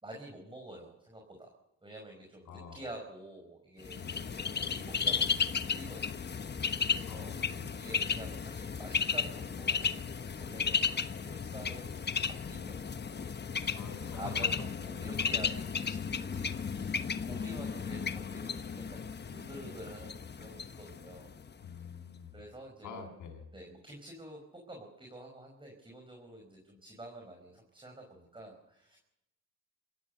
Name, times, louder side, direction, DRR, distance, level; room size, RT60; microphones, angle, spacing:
voice 1, 0.0-1.5 1.8-6.5 6.9-10.0 10.4-21.4 22.3-23.0 23.5-29.0, right 1 dB, 15° right, 1 dB, 5.2 m, -49 dB
voice 2, 2.5-2.8 4.0-4.3 7.1-7.7 13.8-14.5 16.3-16.9 17.3-17.4 21.6-22.4 22.8-23.5, left 6 dB, 80° left, 3 dB, 7.0 m, -46 dB
Bird, 3.8-21.6, left 6 dB, 35° left, 1.2 m, -34 dB
26.5 x 15.5 x 6.6 m, 0.87 s
cardioid pair, 90°, 30 cm